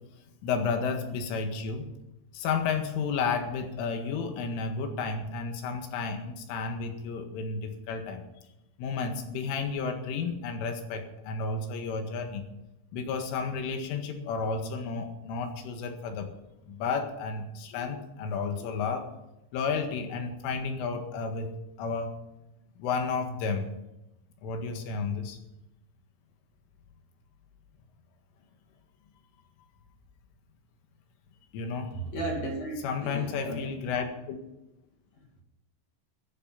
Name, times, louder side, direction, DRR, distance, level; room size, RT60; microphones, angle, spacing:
voice 1, 0.4-1.9 2.3-8.2 8.8-12.5 12.9-16.3 16.6-19.1 19.5-21.5 21.8-22.1 22.8-23.7 24.4-25.4 31.5-32.0 32.8-34.4, left 5 dB, 75° left, 5 dB, 4.2 m, -32 dB
voice 2, 31.9-33.6 35.1-35.3, right 1 dB, 40° left, 0 dB, 2.9 m, -34 dB
14.5 x 13.0 x 5.8 m, 0.93 s
omnidirectional pair, 5.8 m